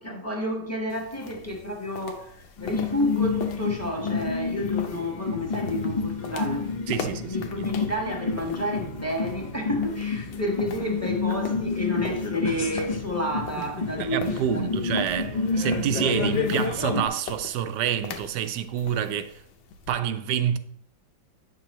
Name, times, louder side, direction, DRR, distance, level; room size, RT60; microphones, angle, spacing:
voice 1, 0.0-6.8 7.3-14.9, equal, 10° left, 1.1 m, -30 dB
sound 1, 0.9-19.9, left 5 dB, 85° left, 1.5 m, -42 dB
sound 2, 2.6-17.1, left 4 dB, 45° left, 0.6 m, -29 dB
voice 2, 6.9-7.9 14.0-19.4 19.9-20.6, right 9 dB, 75° right, 1.2 m, -28 dB
9.1 x 6.2 x 3.0 m
omnidirectional pair, 1.9 m